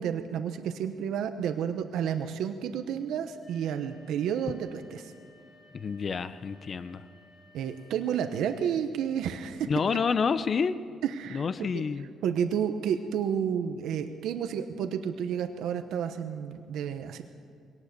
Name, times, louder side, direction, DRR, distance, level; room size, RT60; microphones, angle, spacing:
voice 1, 0.0-5.1 7.5-9.7 11.0-11.4 11.7-11.8 12.2-17.2, right 8 dB, 80° right, 8 dB, 1.0 m, -31 dB
sound 1, 3.4-8.6, left 2 dB, 30° left, 6.9 m, -58 dB
voice 2, 5.7-7.0 9.7-10.8 11.3-12.1, left 5 dB, 45° left, 13 dB, 0.9 m, -28 dB
22.0 x 18.0 x 6.9 m, 2.5 s
cardioid pair, 90°, 0 cm